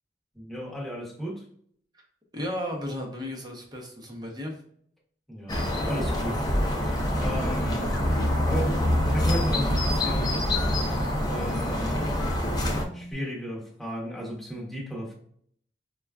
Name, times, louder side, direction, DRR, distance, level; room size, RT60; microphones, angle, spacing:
voice 1, 0.3-1.5 5.3-6.5 6.8-8.8 9.1-10.5 11.3-12.1 12.9-15.1, equal, ahead, 1.0 m, -35 dB
voice 2, 2.3-4.6, left 1 dB, 25° right, 0.8 m, -34 dB
sound 1, 5.5-12.8, left 1 dB, 25° left, 0.5 m, -25 dB
sound 2, 7.9-13.1, left 1 dB, 65° left, 0.6 m, -40 dB
5.1 x 2.3 x 2.3 m
head